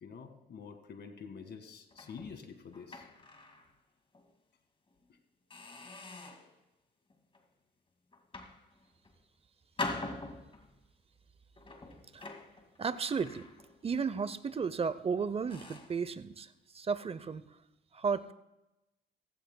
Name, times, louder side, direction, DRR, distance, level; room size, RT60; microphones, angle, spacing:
voice 1, 0.0-3.1, left 6 dB, 60° left, 7 dB, 1.9 m, -47 dB
sound 1, 1.9-3.7 4.1-4.3 4.9-5.0 5.5-6.5 7.1-7.4 8.1-9.2 9.8-10.8 11.6-13.9 14.2-14.5 15.0-15.1 15.5-16.0, left 2 dB, 25° left, 2.2 m, -44 dB
voice 2, 12.8-13.5 13.8-17.6 17.9-18.3, right 5 dB, 30° right, 15 dB, 0.7 m, -34 dB
16.0 x 16.0 x 2.3 m, 0.97 s
cardioid pair, 90°, 20 cm